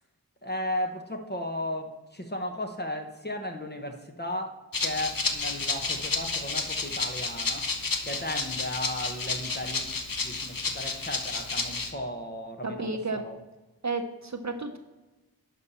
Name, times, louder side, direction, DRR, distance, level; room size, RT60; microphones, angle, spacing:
voice 1, 0.4-7.7 8.0-9.9 10.2-13.4, left 1 dB, 25° left, 3 dB, 1.1 m, -35 dB
Rattle (instrument), 4.7-11.9, left 4 dB, 65° left, 1.0 m, -31 dB
voice 2, 12.6-13.2 13.8-14.8, right 3 dB, 45° right, 6 dB, 0.8 m, -32 dB
10.5 x 5.5 x 4.3 m, 1.1 s
wide cardioid pair, 55°, 37 cm